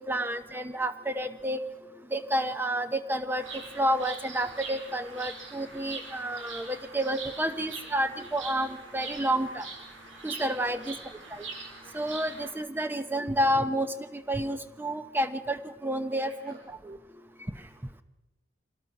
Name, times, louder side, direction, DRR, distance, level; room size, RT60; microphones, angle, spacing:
voice 1, 0.1-1.6 2.1-3.4 3.8-9.6 10.2-10.9 11.3-11.4 11.9-16.6 16.9-17.0, right 1 dB, 10° right, 9 dB, 0.9 m, -30 dB
Bird vocalization bird call bird song, 3.4-12.5, right 4 dB, 90° right, 5.6 m, -43 dB
voice 2, 10.5-10.9 16.1-16.6 17.0-17.1 17.6-18.0, right 2 dB, 55° right, 1 dB, 2.9 m, -54 dB
25.0 x 18.5 x 6.1 m, 1.1 s
head